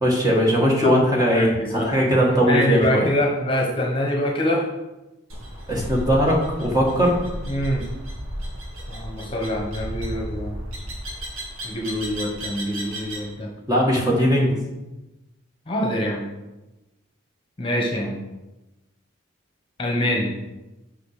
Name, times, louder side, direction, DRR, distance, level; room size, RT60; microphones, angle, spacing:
voice 1, 0.0-3.1 5.7-7.2 13.7-14.6, equal, 20° right, -2 dB, 1.8 m, -19 dB
voice 2, 1.3-1.9 2.3-4.7 7.5-7.8 8.9-10.6 11.6-13.5 15.7-16.3 17.6-18.2 19.8-20.4, left 1 dB, 25° left, -1 dB, 1.3 m, -25 dB
sound 1, 5.3-13.3, equal, 85° right, 2.7 m, -34 dB
6.1 x 5.6 x 6.7 m, 1.0 s
head